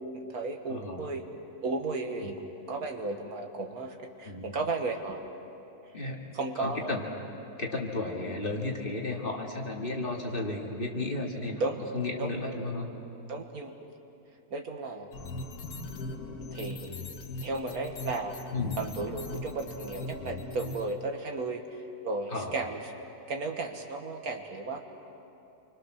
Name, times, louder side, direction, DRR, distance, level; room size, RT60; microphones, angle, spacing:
voice 1, 0.1-1.2 1.6-2.4 2.7-5.3 6.3-7.0 11.6-11.8 12.2-12.3 13.3-13.7 14.5-15.1 16.5-16.9 17.4-18.4 18.8-21.6 22.0-22.8 23.3-24.8, right 3 dB, 70° right, 4 dB, 2.1 m, -34 dB
voice 2, 0.7-1.1 4.2-4.5 5.9-6.2 6.6-7.0 7.6-11.6 11.9-12.9 18.5-18.9 22.3-22.5, left 2 dB, 35° left, -1 dB, 2.5 m, -33 dB
sound 1, 15.1-20.9, left 2 dB, 75° left, 1.9 m, -39 dB
27.5 x 24.5 x 6.5 m, 2.9 s
omnidirectional pair, 1.6 m